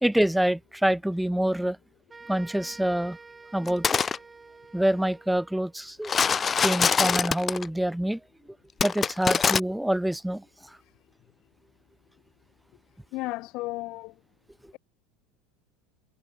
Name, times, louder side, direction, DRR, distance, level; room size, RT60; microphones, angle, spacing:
voice 1, 0.0-1.8 2.3-3.2 3.5-4.0 4.7-6.1 6.6-8.2 8.8-10.4, right 1 dB, 5° right, 2.1 m, -26 dB
sound 1, 2.1-5.8, right 4 dB, 20° right, 7.8 m, -48 dB
sound 2, 3.7-4.2 6.0-7.7 8.8-9.6, left 6 dB, 30° left, 0.7 m, -24 dB
voice 2, 13.1-14.1, left 21 dB, 60° left, 2.0 m, -33 dB
hypercardioid pair, 85°, 0 cm